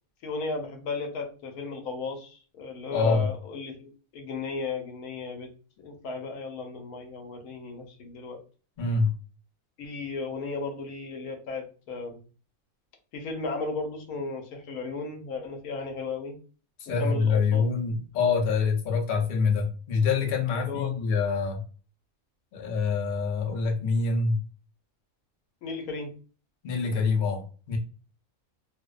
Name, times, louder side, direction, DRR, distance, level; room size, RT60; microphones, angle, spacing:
voice 1, 0.2-5.5 5.8-8.4 9.8-12.2 13.1-16.4 17.0-17.6 20.7-20.9 25.6-26.1, left 4 dB, 85° left, 1.1 m, -35 dB
voice 2, 2.9-3.3 8.8-9.1 16.8-21.6 22.5-24.4 26.6-27.8, left 5 dB, 55° left, 0.6 m, -25 dB
2.6 x 2.1 x 2.3 m
omnidirectional pair, 1.5 m